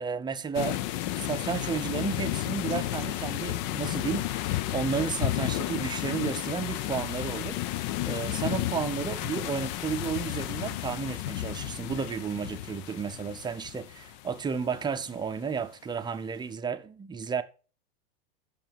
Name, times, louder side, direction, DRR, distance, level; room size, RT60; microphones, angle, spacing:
voice 1, 0.0-17.4, right 6 dB, 15° right, 0.7 m, -33 dB
sound 1, 0.5-15.1, left 15 dB, 45° left, 0.6 m, -32 dB
9.0 x 6.7 x 7.0 m
hypercardioid pair, 125°, 30 cm